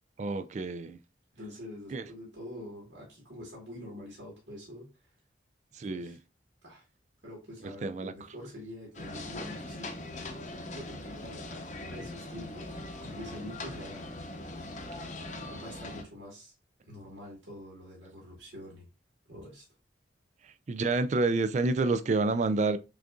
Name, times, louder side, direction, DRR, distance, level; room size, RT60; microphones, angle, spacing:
voice 1, 0.2-1.0 1.9-2.0 5.7-6.2 7.8-8.1 20.7-22.8, right 3 dB, 40° right, 0.3 m, -28 dB
voice 2, 1.3-5.1 5.9-6.2 6.6-6.8 7.2-9.9 10.7-14.1 15.4-16.5 16.8-18.9 19.3-19.6, left 1 dB, 65° right, 1.6 m, -46 dB
sound 1, 8.9-16.0, left 2 dB, 40° left, 0.7 m, -41 dB
6.3 x 2.5 x 2.3 m
head